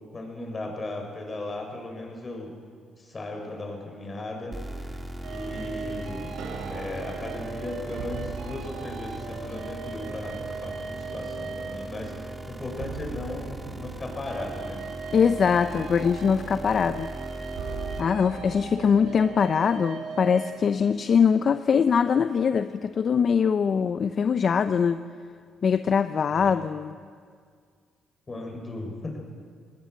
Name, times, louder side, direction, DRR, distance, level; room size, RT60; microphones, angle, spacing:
voice 1, 0.1-2.5 3.0-4.6 4.8-14.8 26.3-26.5 28.3-29.2, left 2 dB, 30° left, 2 dB, 6.6 m, -37 dB
sound 1, 4.5-18.0, right 1 dB, 15° right, 2.0 m, -39 dB
sound 2, 5.2-20.7, right 4 dB, 85° right, 2.9 m, -38 dB
voice 2, 15.1-17.1 18.0-25.0 25.6-27.0, left 6 dB, 50° left, 11 dB, 0.7 m, -22 dB
20.0 x 19.0 x 9.5 m, 2.1 s
cardioid pair, 90°, 0 cm